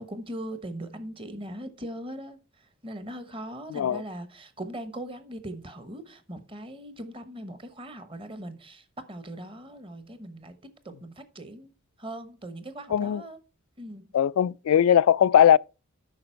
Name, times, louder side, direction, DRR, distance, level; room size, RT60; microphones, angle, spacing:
voice 1, 0.0-2.4 2.8-10.5 10.8-11.7 12.0-13.4 13.8-14.1, right 1 dB, 25° right, 1.0 m, -40 dB
voice 2, 3.7-4.0 12.9-13.2 14.1-15.6, left 9 dB, 90° left, 0.3 m, -19 dB
8.8 x 5.7 x 4.5 m
head